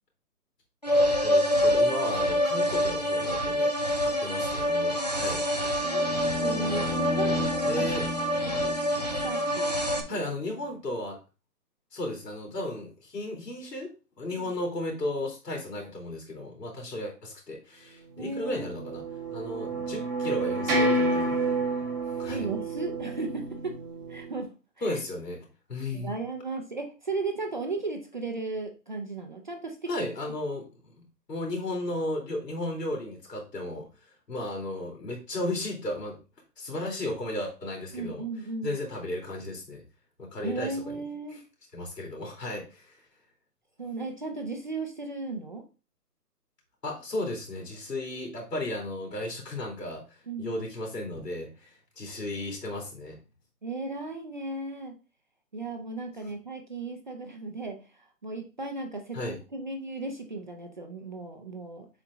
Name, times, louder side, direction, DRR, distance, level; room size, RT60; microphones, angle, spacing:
sound 1, 0.8-10.0, equal, 25° left, 0.5 m, -26 dB
voice 1, 1.2-3.7 4.0-5.4 7.7-8.1 10.1-11.2 11.9-19.0 19.3-21.5 22.0-22.5 24.8-26.1 29.9-36.2 36.6-38.2 38.6-39.8 40.2-41.0 41.3-41.4 41.7-43.0 46.8-53.2 59.1-59.4, left 1 dB, 80° left, 1 dB, 3.0 m, -35 dB
sound 2, 5.8-10.1, left 3 dB, 45° left, 1.0 m, -35 dB
voice 2, 5.8-7.9 8.6-10.2 14.4-14.5 18.2-18.7 22.3-23.7 24.1-24.5 24.8-25.0 25.9-29.9 37.9-38.7 40.4-41.4 43.8-45.6 50.3-50.5 53.6-54.9 55.5-57.8 58.2-61.9, right 3 dB, 30° right, 4 dB, 0.6 m, -35 dB
sound 3, 18.4-24.4, right 2 dB, 10° right, 1.0 m, -29 dB
7.1 x 4.4 x 3.6 m, 0.31 s
hypercardioid pair, 160°, 48 cm